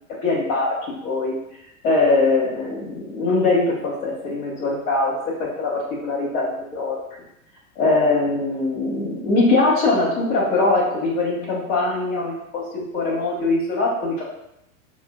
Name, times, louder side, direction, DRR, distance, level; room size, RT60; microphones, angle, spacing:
voice 1, 0.2-0.7 1.0-1.3 1.8-5.1 5.4-7.0 7.8-14.2, left 3 dB, 40° left, -7 dB, 1.3 m, -21 dB
5.8 x 2.3 x 2.3 m, 0.81 s
figure-of-eight pair, 90°, 41 cm